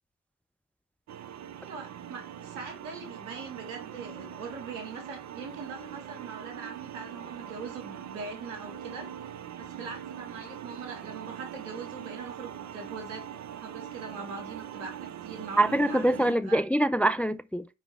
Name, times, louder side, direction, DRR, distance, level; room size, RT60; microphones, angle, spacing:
sound 1, 1.1-16.3, right 9 dB, 50° right, 0.8 m, -42 dB
voice 1, 1.6-9.1 9.6-13.3 13.6-16.6, right 4 dB, 80° right, 2.0 m, -41 dB
voice 2, 15.6-17.6, right 1 dB, 5° left, 0.4 m, -24 dB
5.7 x 5.0 x 4.4 m
figure-of-eight pair, 45°, 37 cm